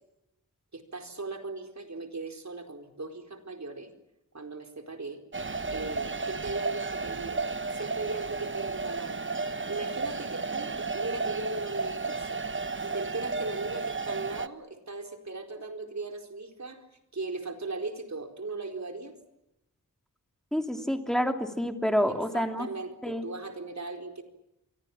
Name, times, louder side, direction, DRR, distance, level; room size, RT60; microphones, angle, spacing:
voice 1, 0.7-3.9 4.3-5.2 5.7-7.4 7.7-12.4 12.8-16.8 17.1-19.1 22.3-24.2, right 3 dB, 55° right, 5 dB, 4.4 m, -38 dB
sound 1, 5.3-14.5, right 4 dB, 35° right, 1.1 m, -33 dB
voice 2, 20.5-22.7 23.0-23.2, equal, ahead, 5 dB, 3.1 m, -28 dB
28.5 x 24.0 x 7.3 m, 0.87 s
wide cardioid pair, 90°, 33 cm